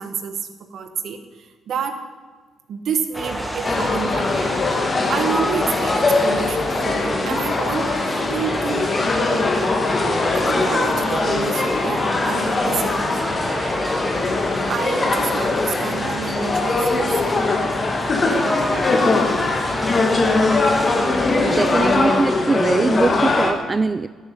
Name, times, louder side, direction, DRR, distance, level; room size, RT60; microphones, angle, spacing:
voice 1, 0.0-2.0 2.7-4.6 5.1-9.0 10.3-13.2 14.7-17.1, right 6 dB, 65° right, 8 dB, 1.1 m, -29 dB
sound 1, 3.1-22.0, equal, 5° right, 1.4 m, -29 dB
sound 2, 3.6-23.5, left 3 dB, 35° left, 1.6 m, -21 dB
voice 2, 21.4-24.1, right 3 dB, 25° right, 12 dB, 0.3 m, -21 dB
12.5 x 7.1 x 5.4 m, 1.4 s
cardioid pair, 90°, 0 cm